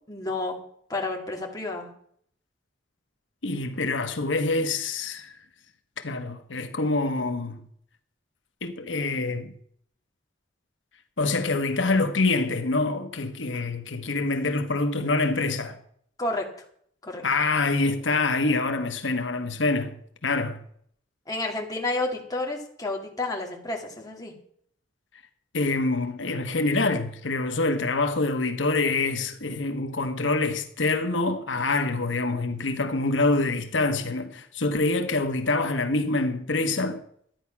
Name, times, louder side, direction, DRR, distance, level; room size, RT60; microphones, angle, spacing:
voice 1, 0.1-0.6 0.9-1.9 16.2-16.5 17.0-17.2 21.3-24.3, left 2 dB, 20° left, 2.3 m, -30 dB
voice 2, 3.4-5.4 6.0-7.6 8.6-9.5 11.2-15.8 17.2-20.6 25.5-37.0, left 3 dB, 90° left, 1.3 m, -26 dB
12.5 x 9.6 x 6.0 m
head